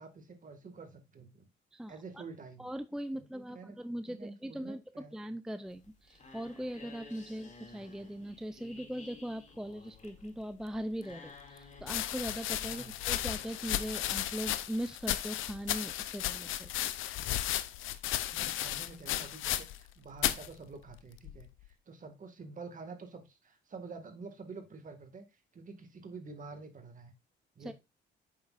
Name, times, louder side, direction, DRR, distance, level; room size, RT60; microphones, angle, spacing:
voice 1, 0.0-1.5 1.9-2.7 3.1-5.2 12.7-13.0 18.3-25.2 25.5-27.1 27.6-27.7, right 4 dB, 40° right, 6 dB, 1.9 m, -48 dB
voice 2, 1.7-2.2 2.6-16.7 27.6-27.7, equal, 5° right, 11 dB, 0.4 m, -40 dB
sound 1, 5.7-14.8, left 3 dB, 35° left, 2.4 m, -55 dB
sound 2, 10.7-10.8 11.8-19.9 20.2-20.5 21.2-21.7, left 13 dB, 85° left, 0.6 m, -34 dB
8.4 x 6.3 x 2.5 m, 0.24 s
cardioid pair, 90°, 20 cm